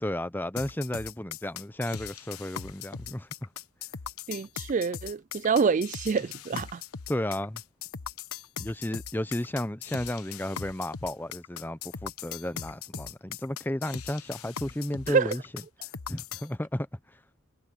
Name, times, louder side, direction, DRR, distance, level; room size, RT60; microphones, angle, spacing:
voice 1, 0.0-3.5 6.5-6.6 7.1-7.6 8.6-15.4 16.1-16.9, left 1 dB, 10° left, 0.7 m, -33 dB
sound 1, 0.6-16.5, left 7 dB, 80° left, 1.1 m, -40 dB
voice 2, 4.3-6.8 15.1-15.3, right 5 dB, 35° right, 0.3 m, -26 dB
head